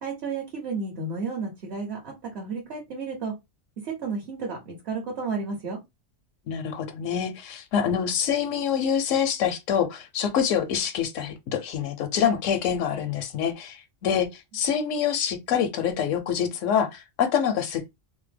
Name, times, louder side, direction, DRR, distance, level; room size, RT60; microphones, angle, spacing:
voice 1, 0.0-3.3 3.8-5.8, right 4 dB, 60° right, 1.1 m, -32 dB
voice 2, 6.5-17.9, left 8 dB, 80° left, 0.9 m, -26 dB
2.8 x 2.0 x 3.2 m
omnidirectional pair, 1.3 m